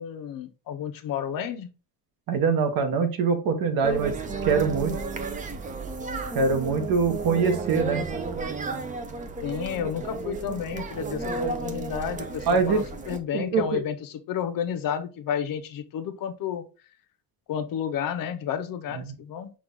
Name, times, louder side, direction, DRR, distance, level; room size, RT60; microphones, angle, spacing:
voice 1, 0.0-1.7 9.4-16.6 17.5-19.5, left 8 dB, 55° left, 0.6 m, -31 dB
voice 2, 2.3-4.1 4.4-4.9 6.3-8.0 12.5-12.8 13.3-13.8 19.1-19.2, right 5 dB, 60° right, 1.0 m, -23 dB
sound 1, 3.8-13.2, right 3 dB, 20° right, 0.3 m, -33 dB
6.1 x 2.3 x 3.6 m
cardioid pair, 170°, 41 cm